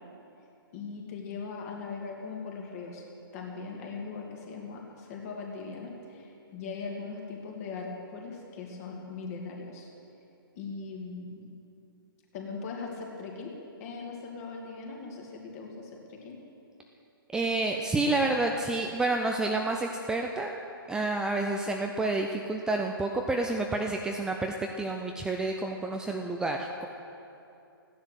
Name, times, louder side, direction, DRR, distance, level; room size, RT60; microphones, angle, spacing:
voice 1, 0.7-3.0 3.3-9.9 10.6-11.6 12.3-13.5 13.8-16.4, left 4 dB, 40° left, 0 dB, 2.6 m, -40 dB
voice 2, 17.3-20.5 20.9-26.9, right 2 dB, 5° right, 2 dB, 0.5 m, -29 dB
15.0 x 10.5 x 6.5 m, 2.8 s
hypercardioid pair, 135°, 12 cm